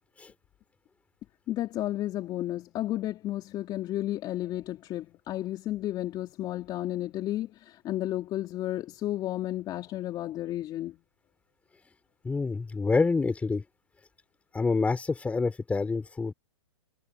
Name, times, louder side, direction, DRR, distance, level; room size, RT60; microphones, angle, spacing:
voice 1, 1.5-11.0, left 14 dB, 25° left, 3.1 m, -32 dB
voice 2, 12.2-13.6 14.5-16.3, left 4 dB, 10° left, 4.1 m, -27 dB
hypercardioid pair, 140°, 17 cm